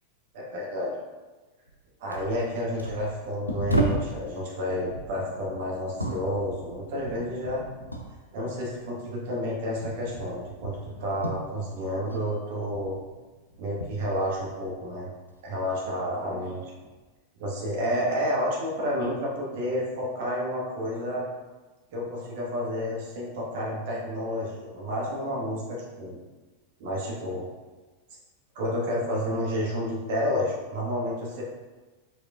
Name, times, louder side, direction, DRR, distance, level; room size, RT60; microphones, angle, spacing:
voice 1, 0.3-0.9 2.0-7.6 8.3-13.0 13.6-15.1 15.4-16.7 17.4-21.3 21.9-26.2 26.8-27.4 28.5-31.4, equal, 50° right, -4 dB, 1.2 m, -30 dB
sound 1, 1.7-1.8 2.1-4.2 4.8-8.2 8.4-12.3 12.5-14.9 15.3-16.0 16.8-17.0, right 1 dB, 85° left, 0.5 m, -34 dB
5.0 x 4.2 x 2.3 m, 1.2 s
figure-of-eight pair, 90°, 0 cm